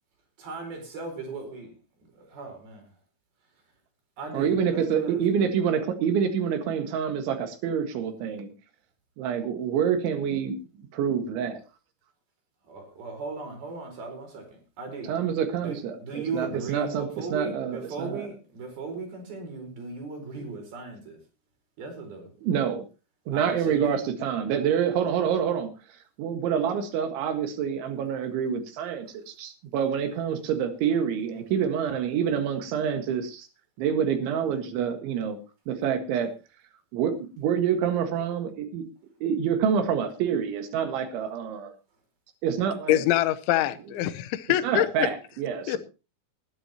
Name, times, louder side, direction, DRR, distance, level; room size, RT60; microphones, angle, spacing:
voice 1, 0.4-1.7 2.2-2.8 4.2-5.2 12.7-14.5 14.8-15.1 15.6-21.2 21.8-22.3 23.3-24.0, right 4 dB, 55° right, 6.3 m, -37 dB
voice 2, 4.3-8.5 9.2-10.6 10.9-11.6 15.0-18.3 22.4-22.8 23.3-25.7 26.2-33.5 33.8-35.4 35.7-36.3 36.9-38.8 39.2-41.7 42.4-43.0 44.6-45.8, right 8 dB, 80° right, 4.1 m, -27 dB
voice 3, 42.9-44.9 45.7-45.8, left 14 dB, 85° left, 3.2 m, -24 dB
20.0 x 11.0 x 2.9 m
omnidirectional pair, 5.3 m